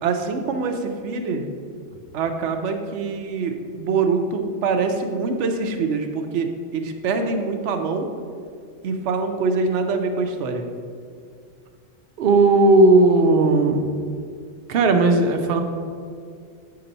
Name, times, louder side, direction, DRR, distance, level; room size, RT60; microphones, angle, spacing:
voice 1, 0.0-1.5 2.1-8.1 8.8-10.7, right 4 dB, 85° right, 6 dB, 0.9 m, -24 dB
voice 2, 12.2-13.9 14.7-15.6, right 2 dB, 65° right, 6 dB, 0.7 m, -16 dB
7.4 x 2.9 x 5.2 m, 2.2 s
omnidirectional pair, 1.2 m